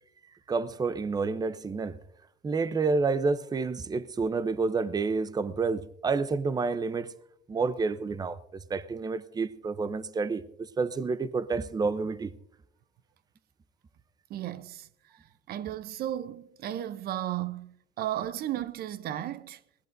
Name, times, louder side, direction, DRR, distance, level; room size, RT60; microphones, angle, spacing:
voice 1, 0.5-2.0 2.4-7.1 7.5-12.3, right 4 dB, 25° right, 0.7 m, -29 dB
voice 2, 14.3-14.9 15.5-19.6, right 12 dB, 65° right, 0.6 m, -34 dB
22.0 x 17.5 x 2.6 m
cardioid pair, 110°, 17 cm